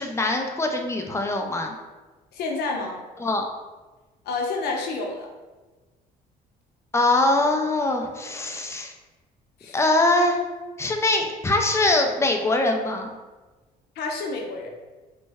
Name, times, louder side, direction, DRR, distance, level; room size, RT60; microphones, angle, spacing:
voice 1, 0.0-1.8 3.2-3.4 6.9-8.9 9.7-10.4 10.8-13.1, left 2 dB, 15° left, 3 dB, 0.4 m, -22 dB
voice 2, 2.3-3.0 4.2-5.3 9.6-9.8 14.0-14.7, left 3 dB, 70° left, 1 dB, 0.6 m, -29 dB
3.2 x 2.1 x 3.4 m, 1.2 s
cardioid pair, 110°, 17 cm